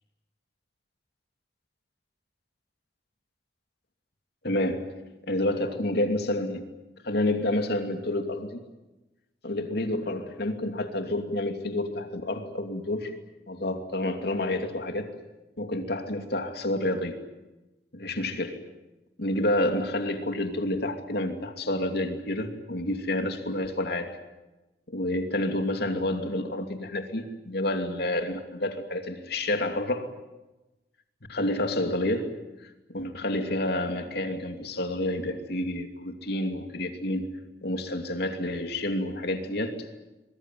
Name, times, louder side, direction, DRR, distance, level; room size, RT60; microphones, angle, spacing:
voice 1, 4.4-4.9 5.3-6.7 7.0-8.6 9.4-13.1 13.5-15.1 15.6-17.2 17.9-18.6 19.2-24.2 24.9-30.1 31.3-32.4 32.9-37.3 37.6-39.9, left 1 dB, 65° left, 6 dB, 2.7 m, -29 dB
23.5 x 22.0 x 9.3 m, 1.0 s
head